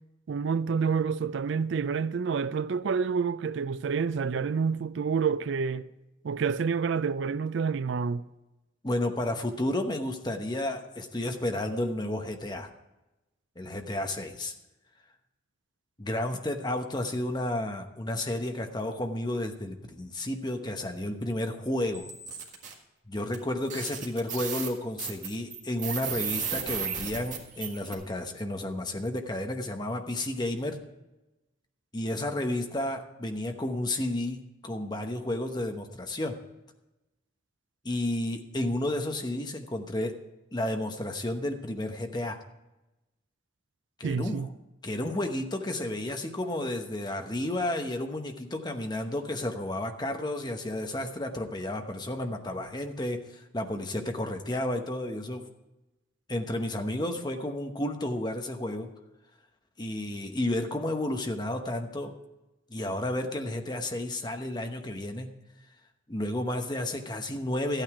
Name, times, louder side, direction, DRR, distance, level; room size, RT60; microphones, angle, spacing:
voice 1, 0.3-5.9 6.2-8.2 44.0-44.5, right 5 dB, 65° right, 0.4 m, -28 dB
voice 2, 8.8-12.7 13.6-14.5 16.0-22.1 23.1-30.8 31.9-36.4 37.8-40.2 40.5-42.4 44.0-44.5 44.8-55.5 56.3-58.9 59.8-62.1 62.7-65.3 66.1-67.8, left 1 dB, 20° left, 0.9 m, -32 dB
sound 1, 21.9-22.7 23.3-23.4 23.7-27.9, right 7 dB, 40° right, 1.6 m, -35 dB
13.0 x 9.0 x 4.8 m
head